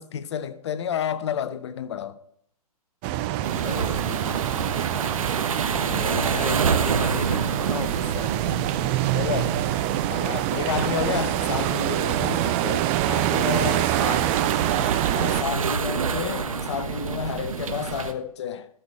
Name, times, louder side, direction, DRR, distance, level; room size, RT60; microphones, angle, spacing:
voice 1, 0.0-2.2 9.1-9.6 10.1-14.0 15.1-18.7, left 8 dB, 45° left, 0.7 m, -30 dB
sound 1, 3.0-15.4, right 14 dB, 20° right, 0.3 m, -26 dB
sound 2, 3.4-18.1, right 6 dB, 60° right, 1.1 m, -28 dB
voice 2, 3.6-4.3 5.8-8.7 14.0-14.2 14.6-15.1, left 4 dB, 85° left, 0.8 m, -35 dB
12.5 x 6.9 x 4.4 m
figure-of-eight pair, 125°, 19 cm